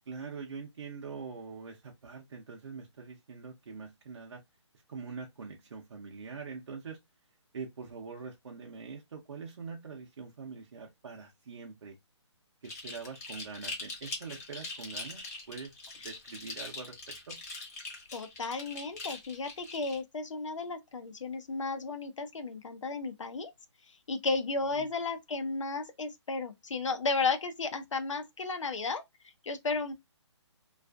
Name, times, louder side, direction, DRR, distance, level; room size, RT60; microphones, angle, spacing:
voice 1, 0.1-4.4 4.9-7.0 7.5-12.0 12.6-15.7 16.0-16.9 17.3-17.4 24.8-24.9, right 5 dB, 60° right, 0.6 m, -44 dB
sound 1, 12.6-20.0, left 3 dB, 30° left, 0.9 m, -42 dB
voice 2, 18.1-23.5 24.1-29.0 29.4-29.9, left 3 dB, 85° left, 0.6 m, -34 dB
2.4 x 2.4 x 2.3 m
hypercardioid pair, 170°, 15 cm